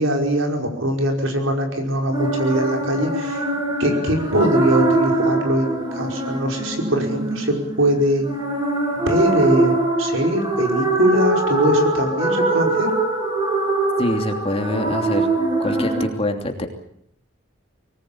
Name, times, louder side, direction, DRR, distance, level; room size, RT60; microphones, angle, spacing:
voice 1, 0.0-3.4 3.8-8.2 9.1-12.9, right 1 dB, 75° right, 3 dB, 5.3 m, -21 dB
sound 1, 2.1-16.1, right 2 dB, 20° right, 6.4 m, -22 dB
voice 2, 14.0-15.3 15.6-16.7, left 1 dB, 30° left, 4 dB, 2.9 m, -24 dB
24.0 x 19.5 x 8.8 m, 0.72 s
head